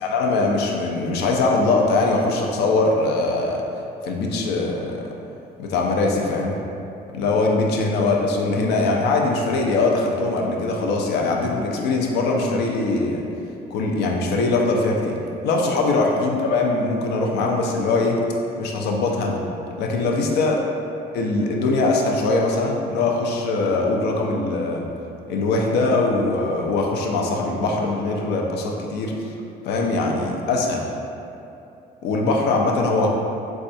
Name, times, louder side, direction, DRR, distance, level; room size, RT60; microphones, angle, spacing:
voice 1, 0.0-3.6 4.0-5.1 5.6-6.5 7.1-13.2 13.7-15.2 15.4-18.2 18.6-19.4 19.8-20.6 21.1-24.9 25.3-29.3 29.7-30.8 32.0-33.1, left 3 dB, 75° left, 0 dB, 0.5 m, -21 dB
4.1 x 2.3 x 2.6 m, 2.8 s
cardioid pair, 110°, 17 cm